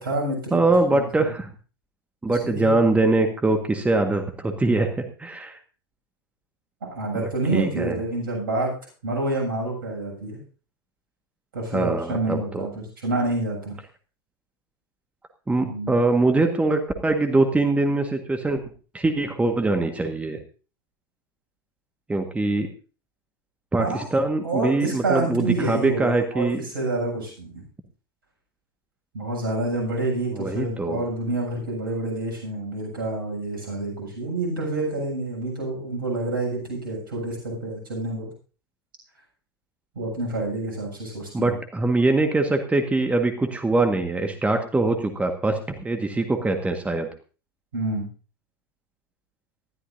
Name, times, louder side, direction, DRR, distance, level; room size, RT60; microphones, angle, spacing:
voice 1, 0.0-0.6 0.9-1.3 2.3-2.7 6.8-8.7 9.0-10.4 11.5-13.8 15.5-15.9 23.8-24.0 24.4-27.6 29.1-38.3 39.9-41.6 47.7-48.1, right 2 dB, 65° right, 0 dB, 7.2 m, -28 dB
voice 2, 0.5-1.5 2.2-4.9 5.2-5.6 7.2-8.0 11.7-12.7 15.5-18.6 18.9-20.4 22.1-22.7 23.7-26.6 30.3-31.0 41.3-47.1, right 2 dB, 10° right, 5 dB, 1.6 m, -23 dB
19.5 x 13.5 x 2.7 m, 0.36 s
figure-of-eight pair, 80°, 12 cm